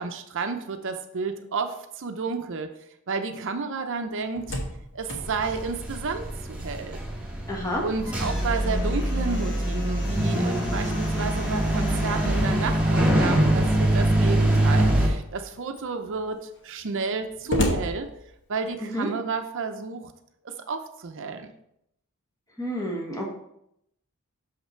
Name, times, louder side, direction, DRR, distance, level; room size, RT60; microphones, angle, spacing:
voice 1, 0.0-2.7 3.1-4.6 4.9-7.0 7.8-18.1 18.5-20.1 20.4-21.5, right 4 dB, 60° right, 7 dB, 0.6 m, -31 dB
Slam, 4.1-6.9 7.2-7.3 7.7-13.4 14.3-14.8 15.4-15.5 15.7-18.8, left 1 dB, 55° left, 1.3 m, -36 dB
sound 1, 5.2-15.1, right 1 dB, 5° right, 1.8 m, -24 dB
voice 2, 7.5-7.8 18.9-19.1 22.6-23.3, equal, 15° left, -1 dB, 1.5 m, -29 dB
6.6 x 5.6 x 4.4 m, 0.77 s
head